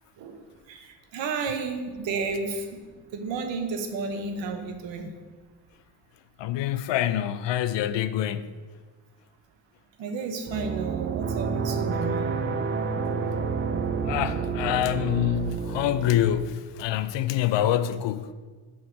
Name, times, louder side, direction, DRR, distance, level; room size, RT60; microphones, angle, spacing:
voice 1, 0.2-2.8 3.1-5.1 10.0-12.2, right 4 dB, 85° right, 1.0 m, -32 dB
voice 2, 6.4-8.5 14.0-18.3, left 11 dB, 75° left, 0.5 m, -26 dB
sound 1, 10.5-16.4, right 5 dB, 30° right, 0.4 m, -29 dB
5.6 x 4.8 x 6.2 m
cardioid pair, 130°, 43 cm